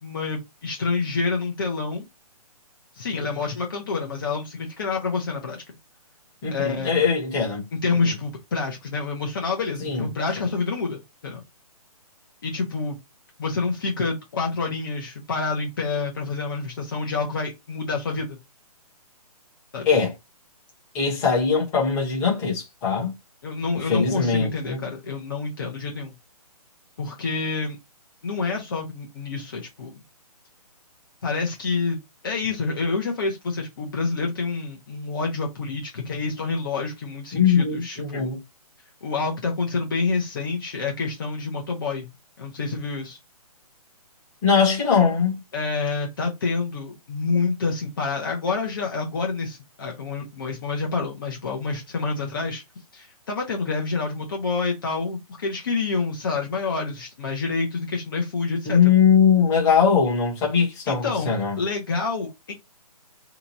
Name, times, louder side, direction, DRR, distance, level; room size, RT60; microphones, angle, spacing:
voice 1, 0.0-2.1 2.9-5.6 6.5-7.1 7.8-11.4 12.4-13.0 13.4-18.4 19.7-19.9 23.4-26.1 27.0-27.8 28.2-29.9 31.2-38.3 39.0-42.1 42.4-43.2 45.5-52.6 52.9-58.8 60.9-62.5, left 4 dB, 35° left, 0.7 m, -28 dB
voice 2, 6.4-8.0 9.8-10.0 10.4-10.5 19.8-20.1 20.9-23.1 23.8-24.8 37.3-38.4 44.4-45.4 58.6-61.6, left 6 dB, 15° left, 1.0 m, -21 dB
2.9 x 2.3 x 4.0 m
hypercardioid pair, 170°, 20 cm